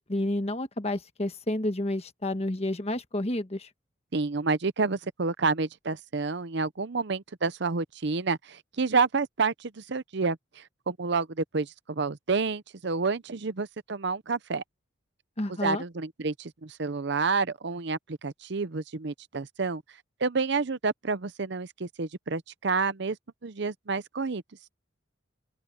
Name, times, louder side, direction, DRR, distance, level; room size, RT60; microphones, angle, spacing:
voice 1, 0.1-3.7 15.4-15.8, left 1 dB, 30° left, 1.3 m, -30 dB
voice 2, 4.1-10.4 10.9-14.6 15.6-19.8 20.2-23.2 23.4-24.4, right 4 dB, 60° right, 0.7 m, -29 dB
open air
head